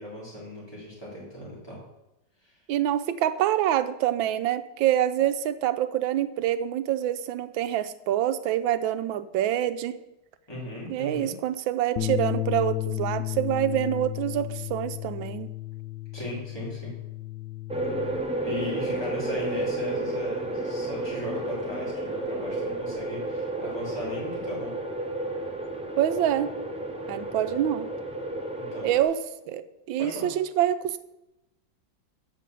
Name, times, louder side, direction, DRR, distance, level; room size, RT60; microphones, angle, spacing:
voice 1, 0.0-1.8 2.4-2.6 10.5-11.3 16.1-16.9 18.4-24.7 28.6-28.9 30.0-30.3, left 1 dB, 10° left, -5 dB, 3.3 m, -37 dB
voice 2, 2.7-10.0 10.9-15.5 26.0-26.5 27.1-27.9 28.8-29.2 29.5-31.0, right 11 dB, 80° right, 12 dB, 1.4 m, -26 dB
Bass guitar, 12.0-18.2, left 16 dB, 70° left, 1.1 m, -33 dB
sound 1, 17.7-29.0, right 1 dB, 10° right, 0.3 m, -32 dB
8.2 x 5.3 x 7.5 m, 0.93 s
omnidirectional pair, 2.1 m